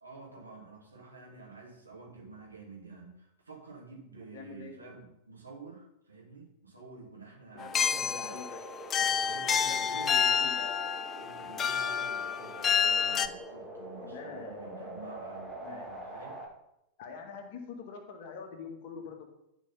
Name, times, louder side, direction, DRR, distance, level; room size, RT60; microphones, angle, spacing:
voice 1, 0.0-8.4 9.0-10.6 11.2-16.4, right 3 dB, 80° right, -2 dB, 2.8 m, -49 dB
voice 2, 4.3-4.8 7.5-8.6 9.6-10.8 14.0-14.6 15.6-15.9 17.0-19.3, left 5 dB, 50° left, 3 dB, 1.8 m, -45 dB
Carillon - Fountain Centre - Belfast, 7.6-13.3, left 7 dB, 25° left, 0.5 m, -29 dB
sound 1, 7.7-16.5, right 1 dB, ahead, 2.0 m, -45 dB
11.0 x 5.2 x 5.7 m, 0.81 s
figure-of-eight pair, 90°, 0 cm